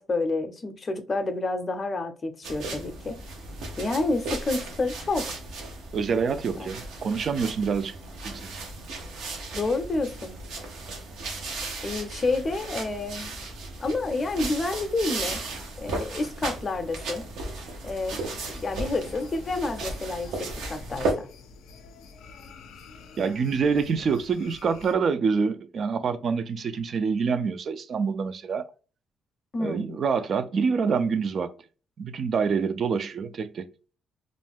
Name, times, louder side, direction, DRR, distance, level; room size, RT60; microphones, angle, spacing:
voice 1, 0.0-3.2 3.8-5.4 6.5-6.7 9.5-10.3 11.8-13.3 13.8-15.4 15.8-17.2 17.8-21.3 29.5-30.0, left 3 dB, 35° left, 0.5 m, -29 dB
sound 1, 2.4-21.1, right 2 dB, 85° right, 0.7 m, -35 dB
voice 2, 5.9-7.9 8.2-8.5 23.2-28.7 29.6-31.5 32.0-33.7, right 5 dB, 55° right, 0.3 m, -26 dB
sound 2, 18.0-25.0, left 5 dB, 85° left, 0.4 m, -48 dB
2.5 x 2.1 x 3.3 m
cardioid pair, 90°, 0 cm